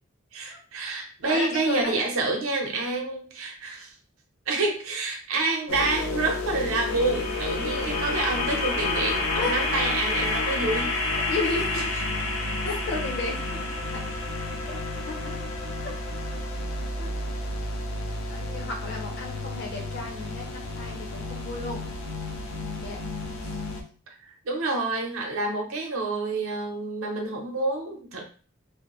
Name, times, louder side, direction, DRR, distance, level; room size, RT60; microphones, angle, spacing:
voice 1, 0.3-3.9 4.5-10.9 11.7-11.8 24.4-28.2, right 3 dB, 85° right, 1 dB, 0.7 m, -28 dB
voice 2, 1.3-2.0 7.6-8.0 9.3-9.7 11.1-11.9 12.6-14.0 14.6-15.4 15.8-15.9 17.0-17.1 18.2-21.8 22.8-23.0 23.4-23.6, left 3 dB, 55° left, 0 dB, 0.8 m, -34 dB
sound 1, 5.7-23.8, left 2 dB, 85° left, 0.6 m, -30 dB
2.6 x 2.1 x 3.0 m, 0.39 s
head